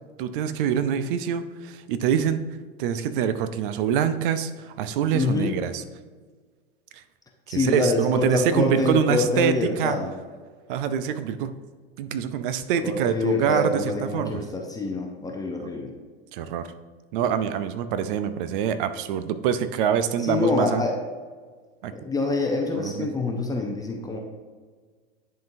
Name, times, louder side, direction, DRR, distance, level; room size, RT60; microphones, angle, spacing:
voice 1, 0.2-2.4 2.8-5.8 7.5-10.0 10.7-11.5 12.0-14.4 15.6-15.7 16.3-16.7 17.1-20.8 21.8-21.9 22.8-23.1, right 8 dB, 60° right, 11 dB, 0.6 m, -25 dB
voice 2, 5.1-5.6 7.5-10.1 12.8-15.9 20.2-20.9 21.9-24.2, left 3 dB, 10° left, 1 dB, 0.7 m, -26 dB
10.5 x 3.8 x 2.7 m, 1.5 s
hypercardioid pair, 100°, 30 cm